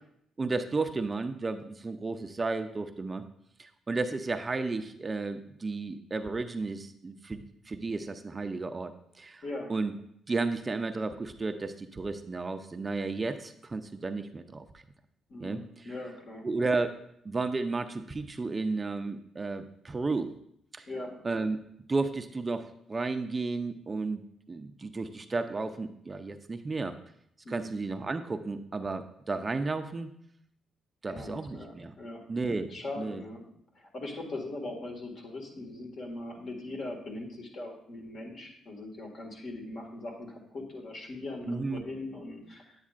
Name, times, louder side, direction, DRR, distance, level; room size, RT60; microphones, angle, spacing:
voice 1, 0.4-3.2 3.6-9.4 9.7-9.9 10.3-14.8 15.4-15.9 16.4-17.0 17.2-20.3 20.7-20.9 21.2-21.6 21.9-24.2 24.5-27.0 27.5-30.1 31.0-31.9 32.3-32.7 33.0-33.2 41.5-41.8, right 3 dB, 25° right, 8 dB, 0.4 m, -33 dB
voice 2, 15.3-16.4 20.9-21.2 27.4-27.7 31.1-32.2 32.7-33.5 33.8-42.7, left 2 dB, 55° left, 1 dB, 1.8 m, -40 dB
9.5 x 8.3 x 2.4 m, 0.72 s
cardioid pair, 90°, 0 cm